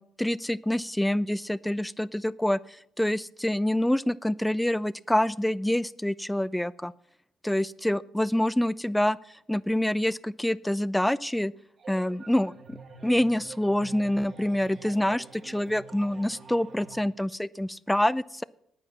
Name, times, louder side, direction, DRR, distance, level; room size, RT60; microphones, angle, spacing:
voice 1, 0.2-6.9 7.4-9.2 9.5-11.5 11.9-18.4, left 1 dB, 5° left, 19 dB, 0.3 m, -26 dB
sound 1, 11.8-17.0, right 5 dB, 55° right, 2.5 m, -47 dB
9.3 x 9.2 x 6.9 m, 0.73 s
cardioid pair, 90°, 0 cm